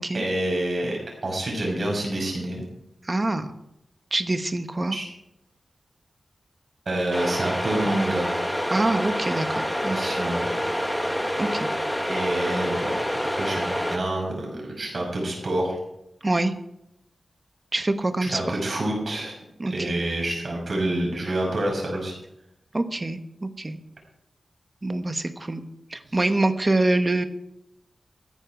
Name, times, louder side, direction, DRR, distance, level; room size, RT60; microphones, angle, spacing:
voice 1, 0.1-2.6 4.9-5.1 6.9-8.3 9.9-10.5 12.1-12.9 13.2-15.8 18.2-19.3 19.7-22.1, right 1 dB, 50° right, -1 dB, 5.8 m, -27 dB
voice 2, 3.0-3.5 4.1-5.0 8.7-10.2 11.4-11.7 16.2-16.5 17.7-18.6 19.6-20.0 22.7-23.8 24.8-25.6 25.9-27.2, right 2 dB, 25° right, 9 dB, 1.1 m, -25 dB
sound 1, 7.1-14.0, equal, 5° left, 1.4 m, -27 dB
15.0 x 10.0 x 5.1 m, 0.82 s
wide cardioid pair, 125°, 0 cm